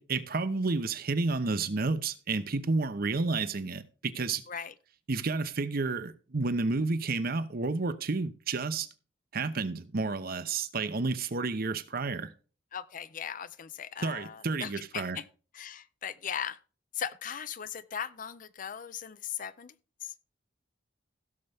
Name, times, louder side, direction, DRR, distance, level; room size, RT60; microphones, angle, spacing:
voice 1, 0.0-4.4 5.1-8.9 9.3-12.3 14.0-15.2, right 3 dB, 50° right, 0.8 m, -31 dB
voice 2, 12.7-15.2 15.5-16.6 17.0-19.7 20.0-20.1, left 8 dB, 45° left, 0.5 m, -38 dB
16.0 x 6.7 x 3.5 m
head